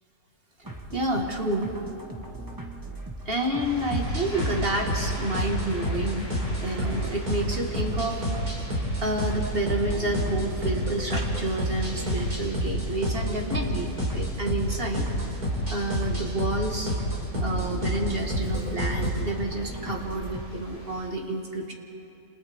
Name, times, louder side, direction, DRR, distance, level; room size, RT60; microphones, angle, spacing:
sound 1, 0.6-20.5, right 1 dB, 15° right, 1.3 m, -40 dB
voice 1, 0.9-1.8 3.3-6.3 6.6-8.2 9.0-15.1 15.7-16.9 17.4-21.7, right 1 dB, 40° right, 1 dB, 2.1 m, -29 dB
sound 2, 3.6-21.1, equal, 20° left, 2.5 m, -41 dB
sound 3, 3.9-19.3, equal, 80° right, 4.5 m, -29 dB
29.0 x 28.0 x 3.6 m, 2.9 s
omnidirectional pair, 1.6 m